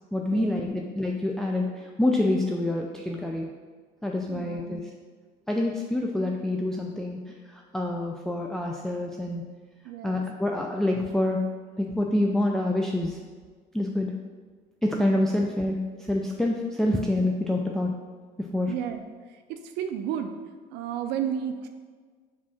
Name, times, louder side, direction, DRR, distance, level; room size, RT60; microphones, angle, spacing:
voice 1, 0.1-3.5 4.0-4.8 5.5-7.2 7.5-9.4 10.0-11.4 11.8-13.2 13.7-14.1 14.8-15.8 16.1-17.9 18.4-18.7, left 1 dB, 5° left, 0 dB, 0.4 m, -27 dB
voice 2, 4.3-4.8 9.8-10.2 18.7-19.0 19.3-20.4 20.7-21.7, right 9 dB, 90° right, 7 dB, 0.4 m, -32 dB
4.9 x 3.6 x 5.6 m, 1.5 s
cardioid pair, 110°, 17 cm